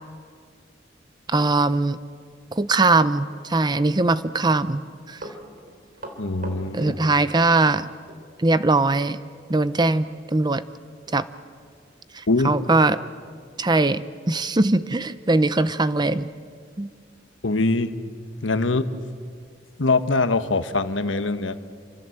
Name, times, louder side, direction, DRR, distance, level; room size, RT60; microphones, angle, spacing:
voice 1, 1.3-2.0 2.5-4.8 5.1-5.2 6.7-7.9 8.4-9.2 9.5-10.6 11.1-11.3 12.1-13.0 13.6-16.3 16.8-16.9, right 2 dB, 20° right, 14 dB, 0.6 m, -21 dB
Run, 5.2-7.8 8.1-8.2 9.5-9.7 10.0-10.1 10.6-10.7 11.1-11.2 11.8-11.9, right 1 dB, 50° right, 3.5 m, -40 dB
voice 2, 6.2-6.9 12.3-12.5 17.4-17.9 18.4-18.9 19.8-21.6, left 3 dB, 85° left, 10 dB, 1.2 m, -22 dB
28.0 x 25.0 x 7.9 m, 2.1 s
head